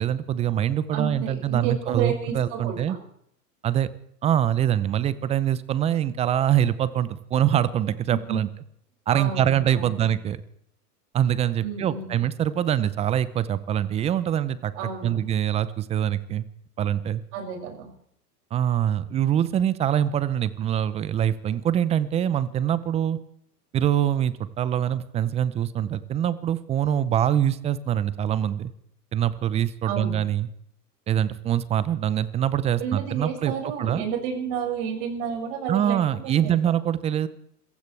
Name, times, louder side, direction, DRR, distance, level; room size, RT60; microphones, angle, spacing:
voice 1, 0.0-3.0 3.6-3.9 4.2-8.5 9.1-10.4 11.1-14.7 15.0-16.4 16.8-17.2 18.5-23.2 23.7-28.7 29.1-30.5 31.1-33.5 33.8-34.0 35.7-37.3, right 10 dB, 15° right, 17 dB, 0.5 m, -24 dB
voice 2, 0.9-3.0 8.1-8.4 9.1-10.1 11.6-12.2 14.8-15.2 17.3-17.9 29.8-30.2 32.8-36.5, right 7 dB, 50° right, 1 dB, 6.5 m, -31 dB
26.5 x 15.5 x 3.3 m, 0.70 s
hypercardioid pair, 115°, 49 cm